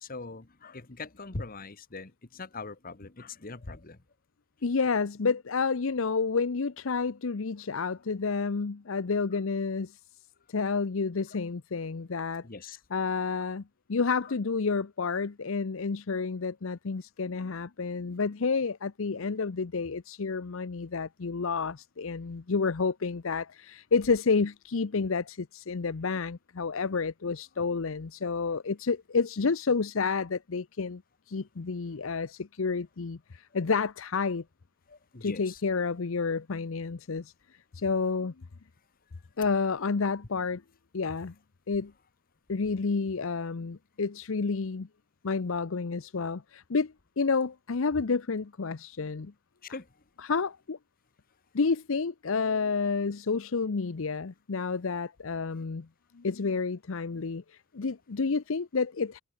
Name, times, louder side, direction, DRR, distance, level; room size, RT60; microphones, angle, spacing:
voice 1, 0.0-4.0 12.4-12.8 34.9-35.6 49.6-49.9, left 3 dB, 40° left, 1.2 m, -41 dB
voice 2, 4.6-10.0 10.5-12.4 12.9-13.6 13.9-31.0 31.3-34.4 35.2-37.3 37.7-38.3 39.4-40.6 40.9-41.3 41.7-41.9 42.5-44.9 45.2-49.3 50.2-50.8 51.5-55.9 56.1-59.2, left 4 dB, 65° left, 0.7 m, -30 dB
head